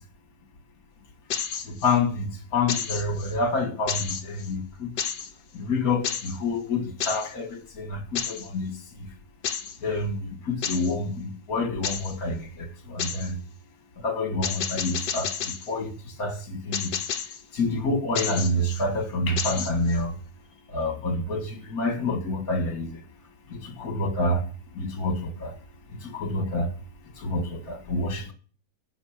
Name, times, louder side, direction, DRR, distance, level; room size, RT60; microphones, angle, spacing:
sound 1, 1.3-2.0 2.7-3.3 3.9-4.5 5.0-5.3 6.0-6.4 7.0-7.3 8.2-8.5 9.4-9.8 10.6-10.9 11.8-12.2 13.0-13.3 14.4-15.7 16.7-17.4 18.2-18.8 19.4-20.0, left 8 dB, 75° left, 1.7 m, -31 dB
voice 1, 1.7-4.9 5.5-8.7 9.8-10.2 10.5-13.3 14.0-15.9 16.2-16.9 17.5-20.1 20.7-23.0 23.5-24.5 24.8-25.5 26.0-26.7 27.2-28.3, left 2 dB, 55° left, 2.4 m, -28 dB
14.0 x 6.4 x 5.1 m
omnidirectional pair, 1.9 m